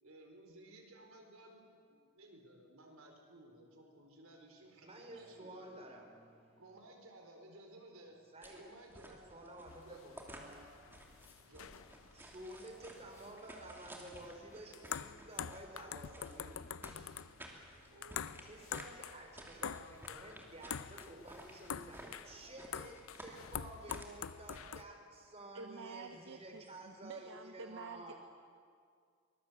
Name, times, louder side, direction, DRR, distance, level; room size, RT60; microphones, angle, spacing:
voice 1, 0.0-5.7 6.6-8.2 8.5-9.2 9.8-10.0 11.4-11.7 17.9-18.2 21.7-21.8 22.4-23.0, right 1 dB, 85° right, 2 dB, 4.3 m, -58 dB
voice 2, 4.8-6.6 8.3-8.6 9.1-10.7 12.1-17.1 18.4-28.1, right 1 dB, 30° right, 2 dB, 3.8 m, -52 dB
sound 1, 8.4-24.7, right 1 dB, 10° right, 2.8 m, -55 dB
sound 2, 9.7-24.8, left 8 dB, 75° left, 0.6 m, -46 dB
sound 3, 11.7-22.1, left 1 dB, 25° left, 4.5 m, -70 dB
voice 3, 25.5-28.1, right 4 dB, 65° right, 8 dB, 0.9 m, -49 dB
24.0 x 20.0 x 8.1 m, 2.2 s
head